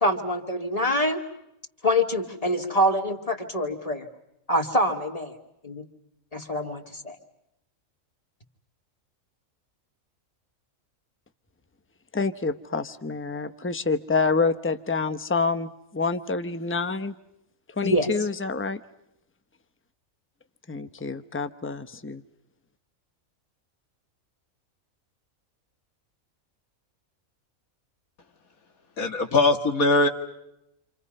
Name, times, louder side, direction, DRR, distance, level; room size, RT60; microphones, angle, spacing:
voice 1, 0.0-1.2 1.8-4.1 4.5-5.3 5.6-5.8 6.3-7.2 17.8-18.1, equal, 25° left, 3 dB, 2.5 m, -25 dB
voice 2, 12.1-17.1 17.8-18.8 20.7-22.2, left 4 dB, 10° left, 10 dB, 0.9 m, -27 dB
voice 3, 29.0-30.1, left 2 dB, 85° left, 5 dB, 2.4 m, -21 dB
29.0 x 28.0 x 5.5 m, 0.86 s
omnidirectional pair, 1.4 m